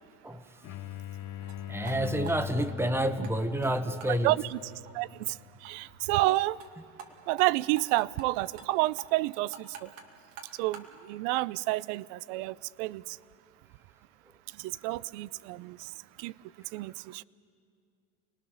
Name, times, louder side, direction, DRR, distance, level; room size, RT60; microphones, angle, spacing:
voice 1, 0.2-0.6 1.7-4.3, right 1 dB, 5° right, 1.1 m, -29 dB
sound 1, 0.6-6.1, left 11 dB, 50° left, 1.0 m, -41 dB
sound 2, 1.4-1.6 1.8-2.0 2.2-3.3 3.6-3.7 4.0-4.1 4.5-4.6 4.8-4.9 5.3-5.4 5.6-5.7 6.0-6.1 6.4-6.7 7.0-7.1 7.4-7.5 7.8-8.3 8.6-8.7 9.0-10.9, right 7 dB, 85° right, 2.5 m, -46 dB
voice 2, 4.2-4.6 4.9-5.4 5.6-6.6 7.3-9.9 10.6-13.2 14.6-15.9 16.2-16.3 16.7-17.2, right 19 dB, 65° right, 0.6 m, -29 dB
29.0 x 19.5 x 6.4 m
supercardioid pair, 110°, 38 cm